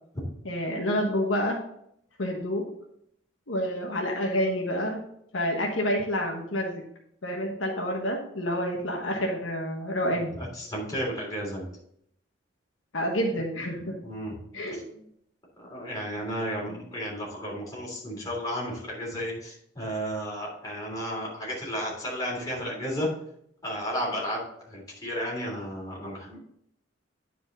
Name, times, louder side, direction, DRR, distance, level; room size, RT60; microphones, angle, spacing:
voice 1, 0.4-1.6 2.2-2.6 3.5-5.0 5.3-6.8 7.2-10.3 12.9-13.9 14.5-14.8, equal, 75° left, 0 dB, 1.3 m, -28 dB
voice 2, 10.1-11.6 14.0-14.3 14.7-14.8 15.6-23.1 23.6-26.4, equal, 20° left, -5 dB, 3.2 m, -33 dB
10.0 x 5.0 x 4.0 m, 0.72 s
head